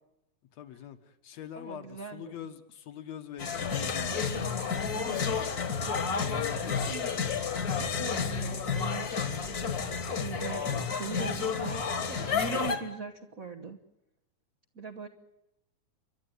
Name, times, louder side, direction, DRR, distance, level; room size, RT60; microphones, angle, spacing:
voice 1, 0.5-1.0 1.2-4.4 4.8-5.3 6.2-7.3, left 10 dB, 65° left, 2.4 m, -44 dB
voice 2, 1.6-2.5 4.1-5.2 6.5-6.6 7.9-9.3 9.9-13.8 14.7-15.1, right 5 dB, 60° right, 0.9 m, -42 dB
sound 1, 3.4-12.8, left 5 dB, 40° left, 1.7 m, -31 dB
29.5 x 12.0 x 9.3 m
omnidirectional pair, 3.4 m